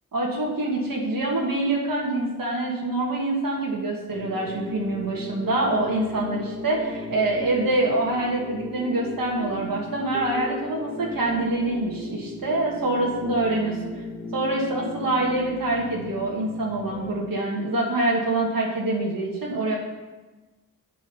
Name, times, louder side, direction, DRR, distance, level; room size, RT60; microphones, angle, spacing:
voice 1, 0.1-13.8 14.3-19.8, right 2 dB, 90° right, -2 dB, 1.4 m, -25 dB
sound 1, 4.1-17.2, left 2 dB, ahead, 2.4 m, -36 dB
10.0 x 3.7 x 5.4 m, 1.2 s
wide cardioid pair, 90°, 33 cm